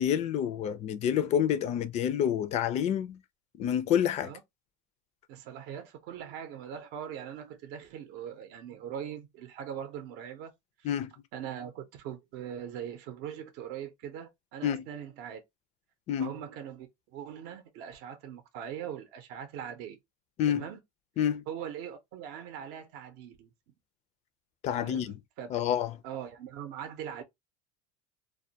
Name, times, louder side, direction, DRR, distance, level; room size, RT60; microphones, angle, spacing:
voice 1, 0.0-3.2 3.5-4.3 10.8-11.1 14.6-14.8 16.1-16.3 20.4-20.7 21.2-21.4 24.6-25.2 25.5-25.9, left 9 dB, 35° left, 0.4 m, -28 dB
voice 2, 5.3-10.5 10.8-10.9 11.3-15.4 16.2-20.0 20.5-20.8 21.5-23.5 24.7-25.5 26.0-27.2, right 9 dB, 55° right, 0.6 m, -41 dB
2.2 x 2.2 x 2.7 m
supercardioid pair, 130°, 20 cm